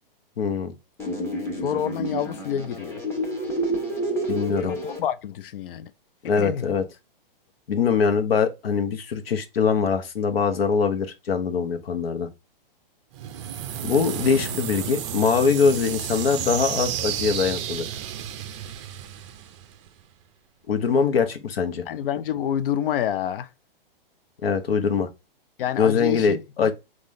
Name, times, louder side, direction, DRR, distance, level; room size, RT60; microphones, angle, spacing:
voice 1, 0.4-0.7 4.3-4.7 6.2-6.8 7.7-12.3 13.8-17.8 20.7-21.8 24.4-25.1 25.8-26.7, left 6 dB, 80° left, 1.0 m, -23 dB
sound 1, 1.0-5.0, right 1 dB, 10° left, 1.0 m, -29 dB
voice 2, 1.6-3.0 4.6-5.9 6.4-6.7 14.3-14.6 21.9-23.5 25.6-26.7, left 10 dB, 65° left, 0.6 m, -28 dB
sound 2, 13.1-20.0, right 10 dB, 30° right, 0.5 m, -32 dB
3.8 x 2.5 x 3.1 m
hypercardioid pair, 145°, 29 cm